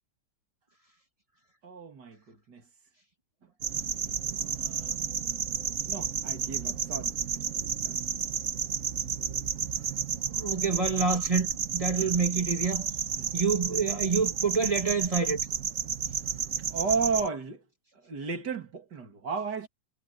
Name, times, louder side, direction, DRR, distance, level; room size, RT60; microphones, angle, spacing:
voice 1, 1.6-2.6 4.2-5.0 5.8-7.2 7.8-8.0 12.0-12.1 13.2-13.3 16.7-17.6 17.9-19.7, right 5 dB, 65° right, 3.3 m, -34 dB
sound 1, 3.6-17.3, right 7 dB, 50° right, 1.4 m, -32 dB
voice 2, 10.3-12.9 13.3-15.4, right 4 dB, 20° right, 1.4 m, -27 dB
omnidirectional pair, 1.9 m